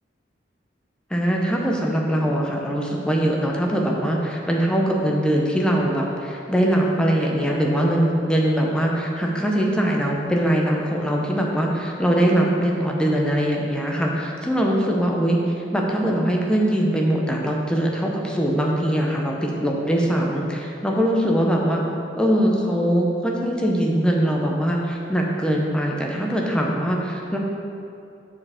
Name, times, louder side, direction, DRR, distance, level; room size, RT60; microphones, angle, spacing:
voice 1, 1.1-15.4 15.7-21.8 22.1-27.4, equal, 5° left, -1 dB, 0.7 m, -22 dB
6.5 x 5.0 x 4.9 m, 2.6 s
head